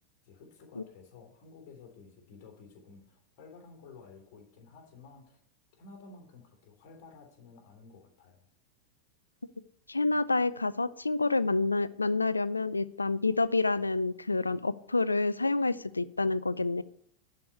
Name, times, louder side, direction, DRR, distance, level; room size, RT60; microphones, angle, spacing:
voice 1, 0.2-5.4 5.7-8.5, left 4 dB, 45° left, 2 dB, 3.1 m, -53 dB
voice 2, 9.9-16.8, left 3 dB, 80° left, 18 dB, 0.4 m, -28 dB
11.0 x 5.0 x 8.4 m, 0.69 s
figure-of-eight pair, 90°, 0 cm